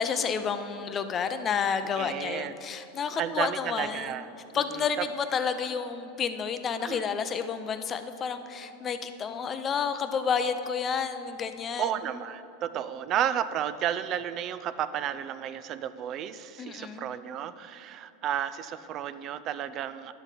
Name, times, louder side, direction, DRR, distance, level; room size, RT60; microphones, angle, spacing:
voice 1, 0.0-4.1 4.5-11.9 16.6-17.1, left 6 dB, 25° left, 9 dB, 0.5 m, -30 dB
voice 2, 2.0-2.5 3.2-4.3 4.5-5.1 6.8-7.2 11.8-20.1, right 10 dB, 40° right, 14 dB, 0.4 m, -32 dB
10.5 x 7.2 x 4.1 m, 3.0 s
supercardioid pair, 130°, 0 cm